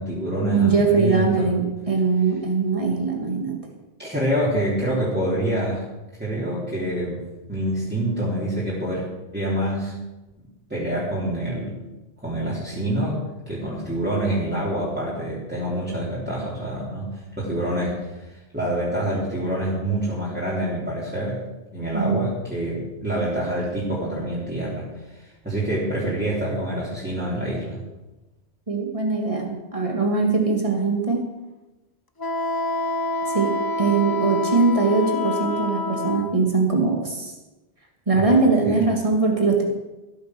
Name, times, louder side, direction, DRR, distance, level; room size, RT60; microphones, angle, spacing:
voice 1, 0.0-1.5 4.0-5.8 6.2-7.2 7.5-9.0 9.3-9.9 10.4-11.8 12.2-13.2 13.5-21.4 21.7-27.8 38.1-38.8, right 1 dB, 10° right, -8 dB, 3.5 m, -26 dB
voice 2, 0.5-1.6 1.9-3.6 21.9-22.3 28.7-31.2 33.3-33.5 33.8-37.3 38.1-39.6, right 4 dB, 30° right, 1 dB, 2.5 m, -21 dB
Wind instrument woodwind instrument, 32.2-36.3, left 2 dB, 25° left, 0.7 m, -27 dB
15.0 x 9.0 x 6.2 m, 1.1 s
omnidirectional pair, 1.1 m